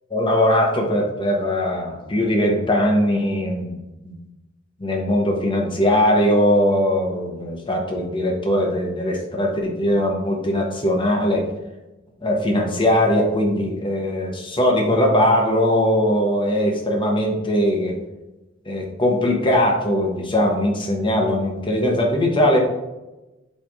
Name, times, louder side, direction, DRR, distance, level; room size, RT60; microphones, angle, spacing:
voice 1, 0.1-4.2 4.8-11.5 12.2-18.0 18.7-22.6, left 1 dB, 25° left, 0 dB, 1.1 m, -20 dB
7.7 x 3.5 x 3.6 m, 1.0 s
head